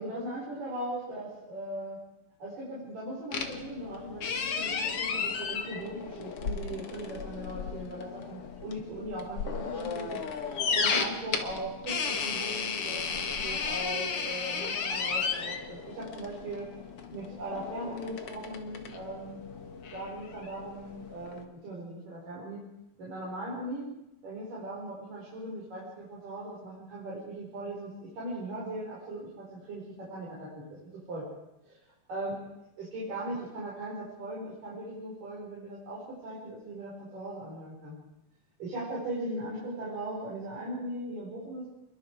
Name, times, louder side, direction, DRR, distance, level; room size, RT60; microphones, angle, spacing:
voice 1, 0.0-2.0 2.4-10.2 10.7-16.6 17.1-19.4 19.9-22.6 23.0-23.9 24.2-31.2 31.6-31.8 32.1-32.4 32.8-37.9 38.6-41.7, right 1 dB, 45° right, -6 dB, 6.8 m, -39 dB
sound 1, 3.3-21.4, left 5 dB, 65° left, 1.4 m, -34 dB
28.5 x 22.0 x 4.9 m, 0.89 s
omnidirectional pair, 5.3 m